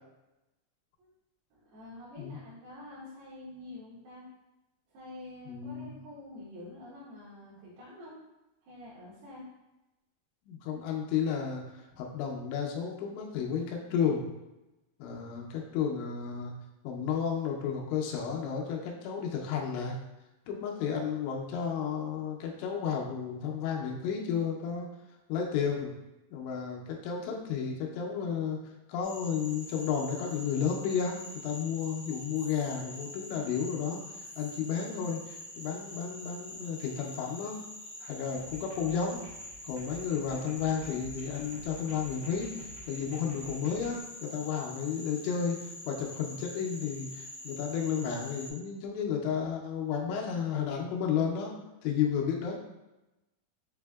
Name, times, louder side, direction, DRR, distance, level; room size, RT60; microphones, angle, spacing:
voice 1, 1.5-4.3 4.9-8.1 8.6-9.5 11.9-12.0, left 1 dB, 70° right, -11 dB, 3.0 m, -47 dB
voice 2, 5.4-6.0 10.5-14.3 15.0-16.5 16.8-20.0 20.5-24.9 25.3-25.9 26.3-28.6 28.9-34.0 34.4-37.6 38.0-39.2 39.6-42.5 42.9-51.5 51.8-52.6, left 7 dB, 90° left, 0 dB, 2.9 m, -32 dB
Frog, 29.0-48.5, left 1 dB, 70° left, 1.3 m, -45 dB
sound 1, 38.4-44.0, right 1 dB, 90° right, 3.3 m, -51 dB
7.5 x 2.7 x 2.3 m, 0.99 s
omnidirectional pair, 5.0 m